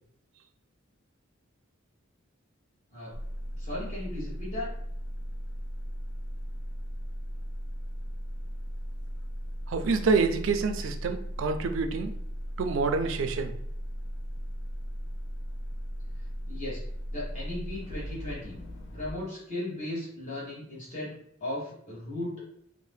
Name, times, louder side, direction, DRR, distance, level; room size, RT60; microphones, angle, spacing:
sound 1, 3.1-19.1, equal, 60° left, 0.4 m, -37 dB
voice 1, 3.6-4.7 16.5-16.8 17.1-18.6 18.9-21.1 21.4-22.3, left 1 dB, 35° left, -7 dB, 1.0 m, -36 dB
voice 2, 9.7-12.1 12.6-13.5, right 4 dB, 70° right, 7 dB, 0.4 m, -27 dB
2.7 x 2.1 x 3.3 m, 0.71 s
head